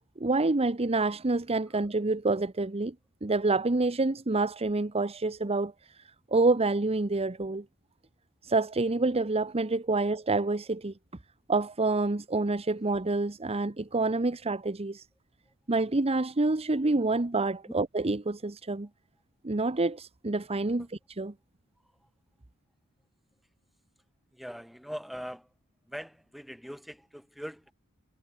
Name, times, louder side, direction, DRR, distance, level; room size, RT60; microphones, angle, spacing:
voice 1, 0.2-2.9 3.2-6.0 6.3-7.6 8.4-10.9 11.5-15.1 15.7-18.9 19.4-20.9 21.2-21.3, right 3 dB, 30° right, 0.9 m, -27 dB
voice 2, 24.3-25.5 25.9-27.7, equal, ahead, 7.0 m, -42 dB
head